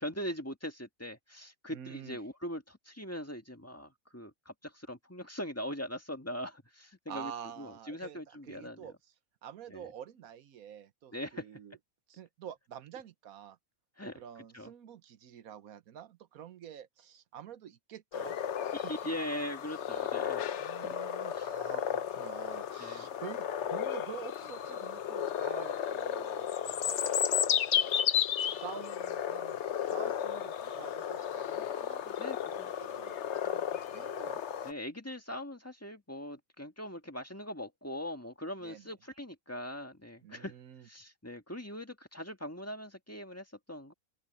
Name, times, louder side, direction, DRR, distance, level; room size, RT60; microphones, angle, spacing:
voice 1, 0.0-7.3 7.6-8.9 9.7-9.9 11.1-11.5 14.0-14.2 14.5-14.7 18.7-20.4 20.8-20.9 21.3-21.5 22.8-23.1 32.2-32.7 33.5-33.6 34.6-40.5 40.8-43.9, equal, 10° left, 1.9 m, -41 dB
voice 2, 1.7-2.2 7.1-8.9 9.4-11.8 12.1-13.6 14.0-18.4 18.7-18.9 20.6-34.4 38.6-38.9 40.2-40.9, right 9 dB, 85° right, 1.4 m, -48 dB
sound 1, 18.1-34.7, left 9 dB, 60° left, 1.0 m, -33 dB
open air
omnidirectional pair, 1.5 m